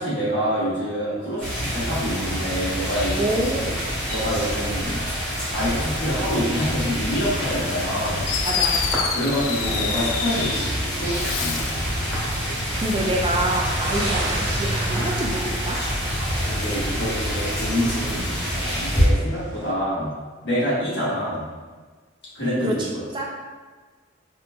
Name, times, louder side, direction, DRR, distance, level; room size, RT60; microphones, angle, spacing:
voice 1, 0.0-3.3 4.1-5.0 5.5-8.2 9.1-11.6 16.2-20.1 20.4-21.5 22.3-23.0, equal, 60° left, -9 dB, 1.4 m, -26 dB
sound 1, 1.4-19.1, equal, 5° left, 1.4 m, -26 dB
voice 2, 3.2-3.8 8.5-8.8 12.5-15.8 22.6-22.9 23.1-23.2, right 1 dB, 25° right, -1 dB, 0.3 m, -26 dB
Fireworks, 8.3-10.7 11.1-11.9, left 7 dB, 90° left, 0.3 m, -27 dB
sound 2, 9.0-19.7, right 2 dB, 60° right, 0.6 m, -39 dB
4.1 x 2.6 x 2.3 m, 1.4 s
head